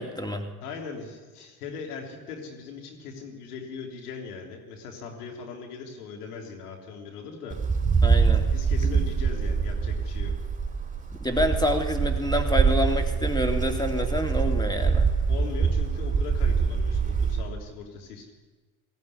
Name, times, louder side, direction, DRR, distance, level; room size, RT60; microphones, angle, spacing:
voice 1, 0.0-0.5 8.0-8.5 11.2-15.1, left 1 dB, 10° left, 4 dB, 3.1 m, -27 dB
voice 2, 0.6-7.6 8.5-10.3 15.3-18.3, left 5 dB, 85° left, 2 dB, 3.5 m, -39 dB
Wind, 7.5-17.5, right 5 dB, 15° right, 3.4 m, -24 dB
18.5 x 15.0 x 9.9 m, 1.3 s
hypercardioid pair, 70°, 45 cm